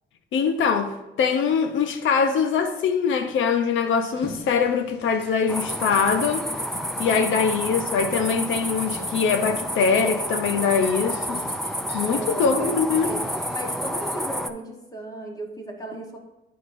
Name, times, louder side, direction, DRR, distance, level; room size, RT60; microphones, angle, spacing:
voice 1, 0.3-6.5 7.0-11.4 11.9-13.1, left 6 dB, 75° left, 0.8 m, -23 dB
sound 1, 4.2-14.2, left 2 dB, 55° left, 1.9 m, -45 dB
sound 2, 5.5-14.5, equal, ahead, 0.5 m, -30 dB
voice 2, 12.1-13.2 13.5-16.2, right 1 dB, 20° left, 1.3 m, -36 dB
11.0 x 4.9 x 2.7 m
cardioid pair, 90°, 20 cm